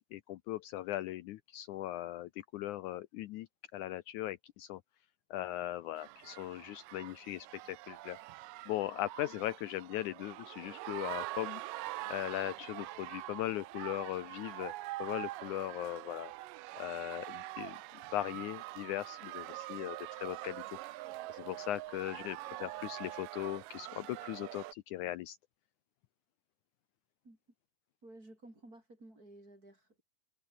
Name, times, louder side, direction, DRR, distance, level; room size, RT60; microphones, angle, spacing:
voice 1, 0.1-3.5 3.7-4.8 5.3-8.2 8.7-11.6 12.1-14.7 15.0-16.3 16.8-17.8 18.1-20.8 21.3-25.4, left 14 dB, 75° left, 2.0 m, -39 dB
sound 1, 6.0-24.7, right 18 dB, 85° right, 2.4 m, -44 dB
voice 2, 28.0-30.0, right 1 dB, 25° right, 8.3 m, -54 dB
omnidirectional pair, 3.8 m